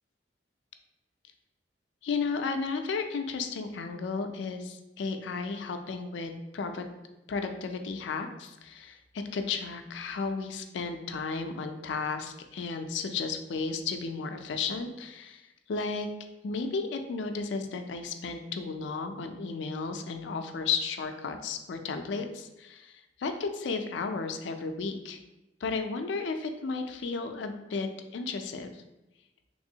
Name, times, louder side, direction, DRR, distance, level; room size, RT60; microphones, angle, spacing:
voice 1, 2.0-6.8 7.3-15.4 15.7-16.1 16.4-25.2 25.6-28.8, left 4 dB, 75° left, 7 dB, 0.4 m, -34 dB
3.4 x 3.0 x 2.7 m, 1.0 s
head